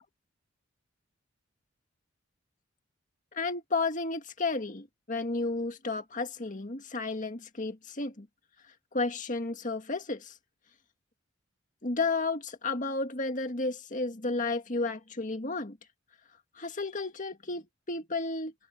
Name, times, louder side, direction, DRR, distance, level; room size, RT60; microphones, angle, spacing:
voice 1, 3.3-8.3 8.9-10.3 11.8-15.8 16.6-18.5, left 3 dB, 40° left, 1.9 m, -32 dB
head